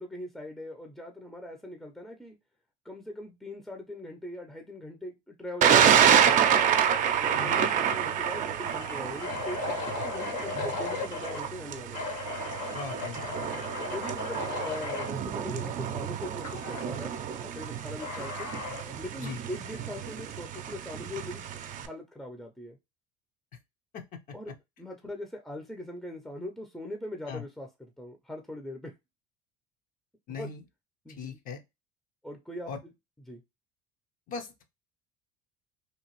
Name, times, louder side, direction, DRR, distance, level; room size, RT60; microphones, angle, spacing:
voice 1, 0.0-2.4 2.8-6.6 7.2-12.1 13.9-17.1 17.4-18.5 19.0-22.8 24.3-27.7 28.0-28.9 30.4-30.5 31.0-31.4 32.2-32.7 33.3-33.4, left 1 dB, ahead, 0.6 m, -41 dB
Thunder, 5.6-21.9, right 8 dB, 50° right, 0.6 m, -28 dB
sound 1, 7.0-7.3 7.6-7.7 8.2-11.5 11.9-15.1 16.4-16.9 18.0-18.9, left 3 dB, 70° left, 1.4 m, -36 dB
voice 2, 12.7-13.4 19.2-19.4 23.9-24.0 27.3-27.5 30.3-30.6 31.2-31.6 32.7-32.8 34.3-34.6, left 5 dB, 50° left, 0.8 m, -39 dB
2.9 x 2.4 x 3.0 m
hypercardioid pair, 80°, 18 cm